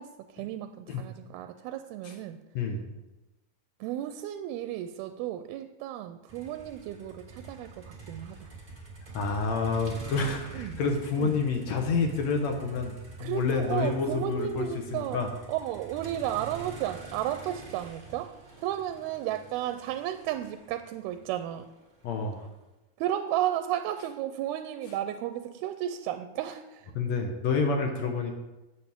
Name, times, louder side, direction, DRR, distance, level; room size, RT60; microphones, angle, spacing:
voice 1, 0.0-2.4 3.8-8.5 10.5-10.8 11.2-11.4 13.2-18.3 18.6-21.7 23.0-26.9, right 12 dB, 85° right, 9 dB, 2.4 m, -33 dB
Motor vehicle (road), 6.3-22.4, right 3 dB, 65° right, 0.4 m, -46 dB
voice 2, 9.1-14.7 14.9-15.3 22.0-22.5 27.0-28.3, left 4 dB, 70° left, 3 dB, 1.8 m, -28 dB
16.5 x 7.3 x 3.6 m, 1.0 s
omnidirectional pair, 4.5 m